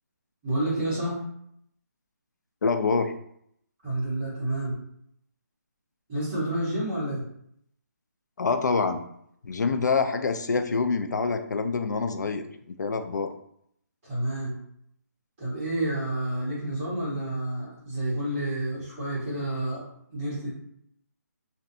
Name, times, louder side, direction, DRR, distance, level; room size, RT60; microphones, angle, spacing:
voice 1, 0.4-1.2 3.8-4.8 6.1-7.2 14.0-14.5 15.4-19.8 20.1-20.5, right 1 dB, 5° right, -13 dB, 0.4 m, -29 dB
voice 2, 2.6-3.1 8.4-9.0 9.4-12.4 12.8-13.3, left 4 dB, 90° left, 7 dB, 0.4 m, -26 dB
2.6 x 2.1 x 2.5 m, 0.71 s
hypercardioid pair, 180°, 9 cm